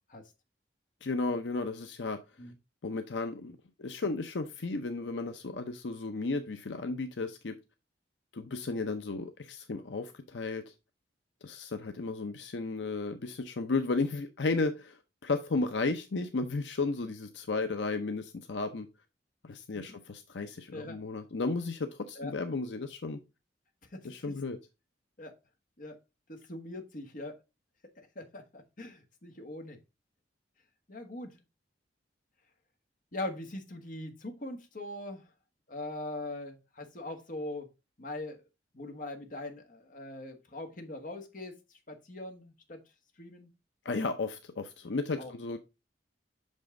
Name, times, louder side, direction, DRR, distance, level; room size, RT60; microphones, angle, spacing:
voice 1, 1.0-2.2 2.8-7.6 8.3-10.6 11.4-18.9 19.4-23.2 24.0-24.6 43.8-45.6, left 3 dB, 80° left, 0.7 m, -34 dB
voice 2, 23.9-24.2 25.2-25.3 25.8-26.0 26.3-27.4 28.0-29.8 30.9-31.4 33.1-35.3 35.7-37.7 38.0-38.4 38.7-42.8 43.2-43.5 45.2-45.3, left 2 dB, 50° left, 1.4 m, -41 dB
6.2 x 5.4 x 3.7 m
head